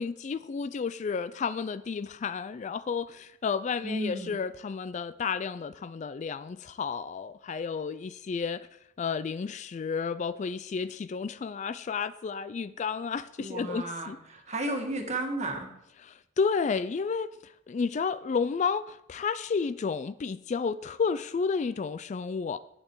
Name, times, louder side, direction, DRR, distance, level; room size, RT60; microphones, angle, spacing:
voice 1, 0.0-8.7 9.0-14.2 16.1-17.3 17.7-22.6, left 5 dB, 40° left, 14 dB, 0.3 m, -31 dB
voice 2, 3.8-4.4 13.4-15.7, right 1 dB, 35° right, 3 dB, 1.6 m, -33 dB
10.5 x 8.8 x 4.6 m, 0.79 s
head